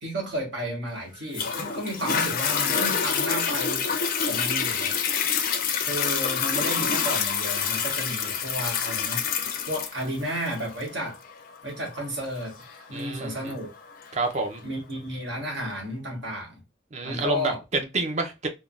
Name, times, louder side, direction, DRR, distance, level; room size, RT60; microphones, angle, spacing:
voice 1, 0.0-3.9 4.3-5.0 5.8-11.2 11.6-13.7 14.6-16.6 17.0-17.6, equal, 80° right, 1.6 m, -33 dB
Toilet flush, 1.3-14.4 15.0-15.1, left 7 dB, 50° left, 0.5 m, -27 dB
voice 2, 12.9-13.5 14.1-14.6 16.9-18.5, right 3 dB, 40° right, 0.6 m, -28 dB
3.6 x 2.2 x 2.3 m
head